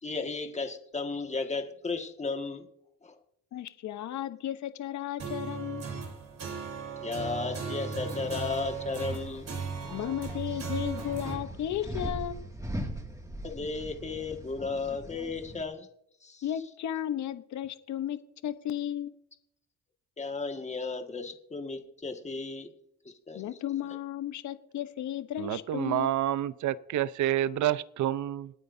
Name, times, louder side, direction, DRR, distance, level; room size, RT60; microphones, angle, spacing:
voice 1, 0.0-2.7 3.0-3.1 7.0-9.5 13.4-15.9 16.2-16.4 20.2-22.7 23.0-23.4, left 4 dB, 20° left, 5 dB, 1.8 m, -34 dB
voice 2, 3.5-5.9 9.9-12.4 16.4-19.1 23.3-26.2, left 11 dB, 70° left, 12 dB, 0.9 m, -34 dB
sound 1, 5.2-11.3, right 5 dB, 60° right, 4.7 m, -37 dB
sound 2, 8.3-15.6, right 1 dB, 10° right, 2.2 m, -41 dB
voice 3, 25.4-28.5, right 12 dB, 75° right, 16 dB, 0.7 m, -28 dB
27.0 x 9.5 x 2.7 m, 0.75 s
cardioid pair, 90°, 30 cm